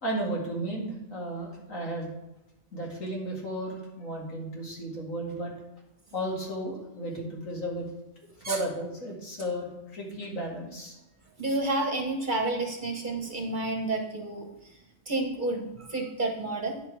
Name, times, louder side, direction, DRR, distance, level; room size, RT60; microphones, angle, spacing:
voice 1, 0.0-2.1 2.7-5.5 6.1-7.9 8.5-10.9, right 1 dB, 70° left, -2 dB, 2.5 m, -34 dB
voice 2, 11.4-14.5 15.1-16.8, right 2 dB, 40° right, 1 dB, 1.2 m, -30 dB
9.6 x 6.0 x 4.6 m, 0.94 s
omnidirectional pair, 1.4 m